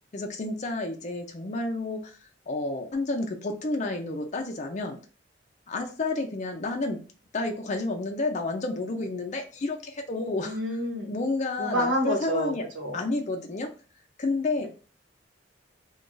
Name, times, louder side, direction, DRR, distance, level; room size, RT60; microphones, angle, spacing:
voice 1, 0.1-5.0 5.7-7.0 7.3-10.6 11.1-12.6 12.9-13.7 14.2-14.7, left 2 dB, 40° left, 3 dB, 0.5 m, -30 dB
voice 2, 10.4-11.1 11.6-13.0 14.6-14.7, equal, 85° right, 1 dB, 1.0 m, -28 dB
2.4 x 2.3 x 3.8 m, 0.37 s
head